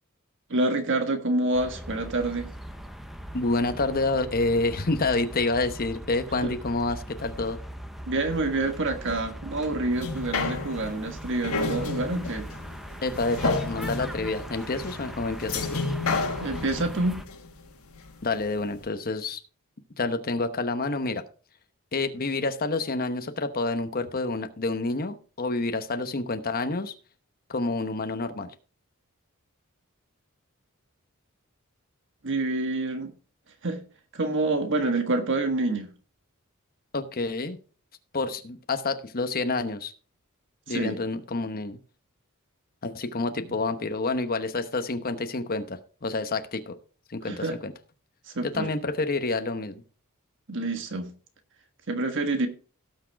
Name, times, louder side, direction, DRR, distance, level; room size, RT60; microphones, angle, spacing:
voice 1, 0.5-2.5 6.4-6.5 8.1-12.5 16.4-17.2 32.2-33.1 33.6-33.8 34.1-35.9 40.7-41.0 47.2-47.6 48.3-48.7 50.5-51.1 51.9-52.5, right 2 dB, 60° right, 1.5 m, -27 dB
sound 1, 1.5-17.3, equal, ahead, 0.9 m, -40 dB
voice 2, 3.3-7.6 13.0-15.8 18.2-19.4 20.0-21.2 21.9-26.9 27.5-28.5 36.9-37.6 38.1-39.9 40.7-41.8 42.8-46.7 47.1-47.7 48.4-49.8, left 3 dB, 45° left, 1.0 m, -28 dB
sound 2, 9.9-18.4 18.9-19.0, left 3 dB, 85° left, 1.9 m, -31 dB
17.5 x 6.3 x 3.5 m
head